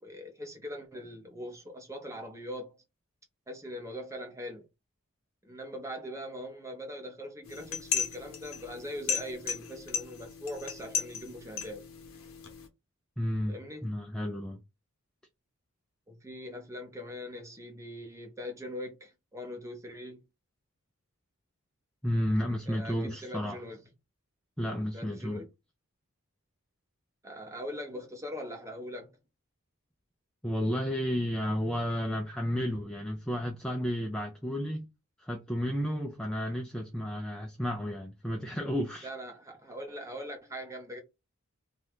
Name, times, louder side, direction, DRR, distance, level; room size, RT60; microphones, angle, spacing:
voice 1, 0.0-2.8 3.5-4.6 5.4-11.8 13.5-13.9 16.1-20.2 22.7-23.8 24.9-25.5 27.2-29.1 39.0-41.0, equal, 15° right, 0.7 m, -41 dB
sound 1, 7.4-12.7, left 7 dB, 60° left, 0.8 m, -36 dB
voice 2, 13.2-14.6 22.0-23.6 24.6-25.5 30.4-34.9 35.2-39.1, equal, 5° left, 0.3 m, -32 dB
2.7 x 2.3 x 3.4 m
head